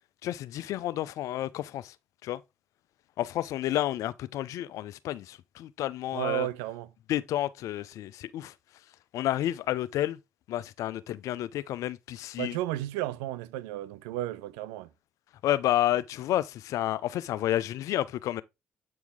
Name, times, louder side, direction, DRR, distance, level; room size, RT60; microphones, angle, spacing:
voice 1, 0.2-1.9 2.2-2.4 3.2-6.5 7.1-8.5 9.1-10.2 10.5-12.6 15.4-18.4, left 13 dB, 70° left, 0.5 m, -30 dB
voice 2, 6.1-6.9 12.4-14.9, right 15 dB, 80° right, 0.5 m, -33 dB
8.3 x 4.6 x 3.6 m
hypercardioid pair, 45°, 6 cm